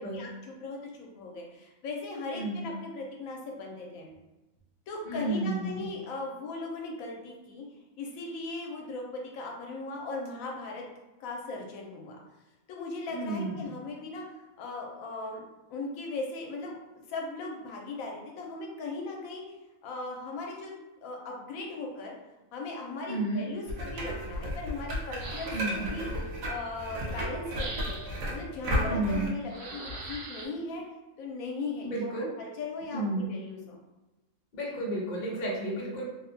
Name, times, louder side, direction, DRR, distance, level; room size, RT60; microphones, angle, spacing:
voice 1, 0.0-4.1 4.9-7.6 8.0-10.8 11.2-12.2 12.7-15.4 15.7-16.8 17.1-19.6 19.8-20.7 21.0-22.1 22.5-28.0 28.3-30.8 31.2-33.8, left 3 dB, 80° left, 0 dB, 1.0 m, -38 dB
voice 2, 2.3-2.7 5.1-5.9 13.1-13.7 23.1-23.4 25.5-25.9 28.8-29.3 31.8-32.3 32.9-33.3 34.5-36.0, right 2 dB, 45° left, -3 dB, 0.6 m, -32 dB
sound 1, 23.7-29.3, equal, 85° right, 1.1 m, -34 dB
sound 2, 25.2-25.9 27.5-28.3 29.5-30.5, right 2 dB, 65° right, 0.7 m, -41 dB
2.9 x 2.1 x 2.6 m, 1.1 s
omnidirectional pair, 1.4 m